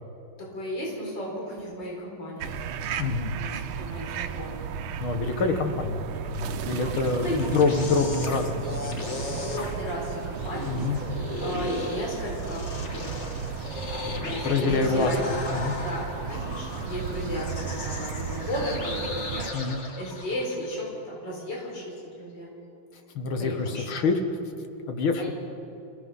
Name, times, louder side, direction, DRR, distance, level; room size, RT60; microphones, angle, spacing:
voice 1, 0.4-2.5 3.2-4.6 7.1-7.6 9.4-10.8 11.4-15.3 15.8-22.5 23.4-24.1 25.2-25.3, equal, 55° left, -3 dB, 5.0 m, -35 dB
sound 1, 2.4-19.5, right 7 dB, 85° right, 1.7 m, -34 dB
voice 2, 3.0-3.3 5.0-9.1 10.7-11.0 14.0-15.2 15.5-15.8 19.5-19.8 23.2-24.4 24.9-25.3, left 4 dB, 75° left, 6 dB, 2.3 m, -26 dB
sound 2, 6.6-20.8, left 2 dB, 35° left, 1.8 m, -37 dB
27.5 x 18.0 x 5.6 m, 2.8 s
omnidirectional pair, 2.3 m